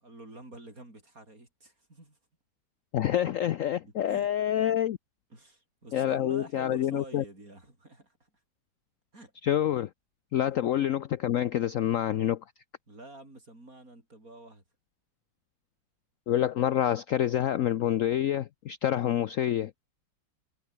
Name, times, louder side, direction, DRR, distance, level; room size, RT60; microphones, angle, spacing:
voice 1, 0.0-2.2 3.8-4.3 5.3-8.3 9.1-9.3 10.4-10.7 12.9-14.6, right 2 dB, 45° right, 7.7 m, -48 dB
voice 2, 2.9-5.0 5.9-7.2 9.4-9.9 10.3-12.4 16.3-19.7, left 11 dB, 80° left, 0.7 m, -27 dB
omnidirectional pair, 2.1 m